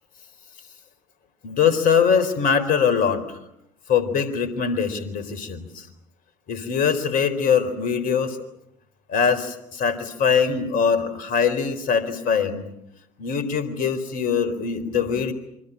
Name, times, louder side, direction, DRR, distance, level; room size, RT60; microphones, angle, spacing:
voice 1, 1.4-3.4 3.9-5.9 6.5-8.4 9.1-12.7 13.2-15.3, left 6 dB, 55° left, 14 dB, 4.2 m, -22 dB
27.5 x 24.5 x 8.8 m, 0.79 s
figure-of-eight pair, 55°, 17 cm